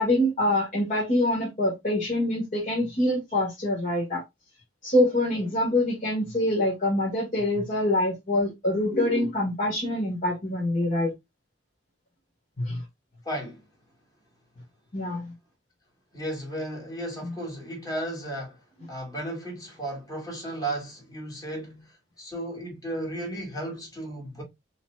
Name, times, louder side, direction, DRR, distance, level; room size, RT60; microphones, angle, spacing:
voice 1, 0.0-4.2 4.8-11.1 12.6-12.8 14.9-15.3 17.2-17.3, left 1 dB, 45° left, 1.8 m, -25 dB
voice 2, 13.2-13.7 16.1-18.6 18.9-24.4, right 1 dB, 20° left, 2.3 m, -34 dB
5.5 x 3.1 x 2.3 m
head